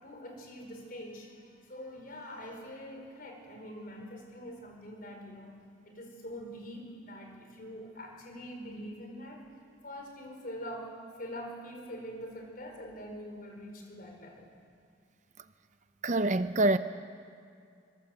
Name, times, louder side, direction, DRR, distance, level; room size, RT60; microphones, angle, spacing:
voice 1, 0.0-9.5 9.8-14.5, equal, 45° left, 3 dB, 4.7 m, -44 dB
voice 2, 16.0-16.8, right 2 dB, 40° right, 11 dB, 0.6 m, -25 dB
24.5 x 23.0 x 7.8 m, 2.4 s
head